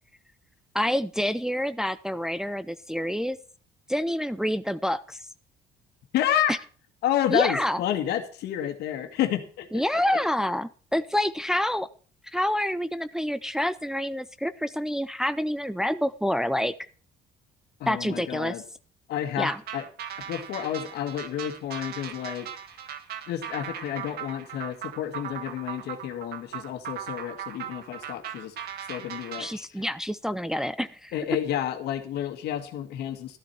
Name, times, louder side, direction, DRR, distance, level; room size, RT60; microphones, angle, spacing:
voice 1, 0.7-3.4 3.9-5.2 6.5-6.6 7.3-7.8 9.7-11.9 12.3-16.7 17.9-18.6 19.4-19.6 29.4-31.1, equal, 5° right, 12 dB, 0.5 m, -27 dB
voice 2, 6.1-6.6 7.0-9.7 9.9-10.2 17.8-18.6 19.1-19.9 20.3-22.5 23.3-28.5 28.9-29.6 31.1-33.4, left 11 dB, 75° left, 7 dB, 1.9 m, -30 dB
sound 1, 19.4-29.5, right 10 dB, 70° right, 1.8 m, -38 dB
13.0 x 11.5 x 4.4 m, 0.40 s
cardioid pair, 110°, 17 cm